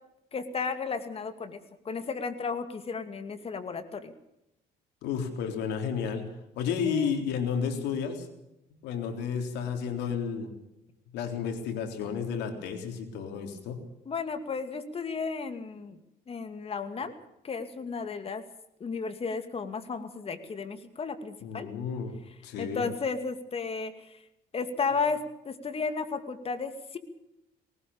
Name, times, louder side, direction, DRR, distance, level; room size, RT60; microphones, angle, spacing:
voice 1, 0.3-1.6 1.8-4.1 6.9-7.1 14.1-16.0 16.3-17.1 17.4-18.4 18.8-21.7 22.6-23.9 24.5-25.2 25.4-27.0, left 5 dB, 35° left, 9 dB, 2.5 m, -33 dB
voice 2, 5.0-6.3 6.6-8.3 8.8-10.5 11.1-13.8 21.4-22.1 22.4-22.9, left 7 dB, 85° left, 5 dB, 3.7 m, -32 dB
20.0 x 19.0 x 7.0 m, 0.85 s
cardioid pair, 110°, 17 cm